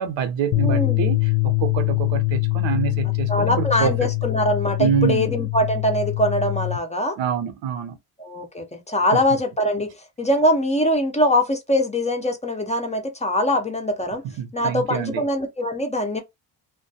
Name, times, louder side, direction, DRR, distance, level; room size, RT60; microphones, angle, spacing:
voice 1, 0.0-4.1 4.8-5.3 7.2-8.0 9.1-9.4 14.4-15.2, right 8 dB, 75° right, 0.7 m, -26 dB
sound 1, 0.5-6.8, left 23 dB, 75° left, 0.6 m, -23 dB
voice 2, 0.6-1.1 3.3-7.2 8.2-9.9 10.2-14.2 14.5-16.2, left 1 dB, 15° left, 0.4 m, -22 dB
2.3 x 2.2 x 2.6 m
cardioid pair, 95°, 46 cm